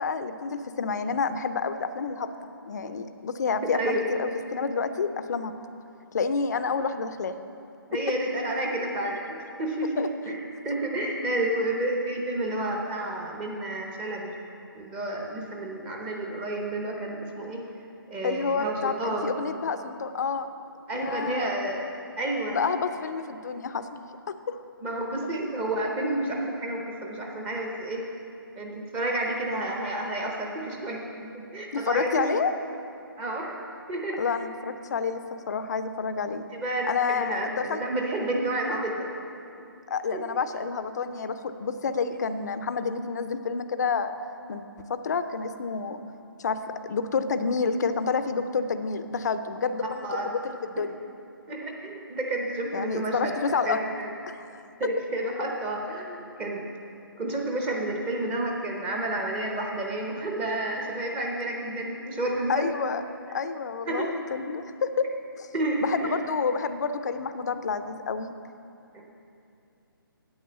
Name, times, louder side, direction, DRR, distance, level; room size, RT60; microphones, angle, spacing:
voice 1, 0.0-2.3 2.6-5.5 6.1-7.4 10.0-10.1 18.2-20.5 20.9-21.5 22.5-23.9 24.3-24.6 31.7-32.5 34.2-36.4 36.9-37.8 39.9-44.1 44.5-44.6 44.9-46.0 46.4-46.6 46.9-50.9 52.7-53.9 54.3-54.6 62.5-63.0 63.3-65.1 65.4-65.5 65.8-68.3, left 5 dB, 50° left, 10 dB, 0.5 m, -29 dB
voice 2, 3.6-4.0 7.9-10.4 10.6-14.3 14.7-17.6 18.1-19.3 20.9-21.8 22.2-22.6 24.8-28.0 28.6-32.2 33.2-33.6 33.9-34.2 36.5-39.1 40.1-40.2 50.0-50.3 51.5-53.3 53.7-54.1 54.8-56.7 57.2-62.7 63.9-64.1 65.5-66.2 68.9-69.0, right 1 dB, 10° right, 0 dB, 0.7 m, -30 dB
8.6 x 8.6 x 6.7 m, 2.6 s
hypercardioid pair, 165°, 12 cm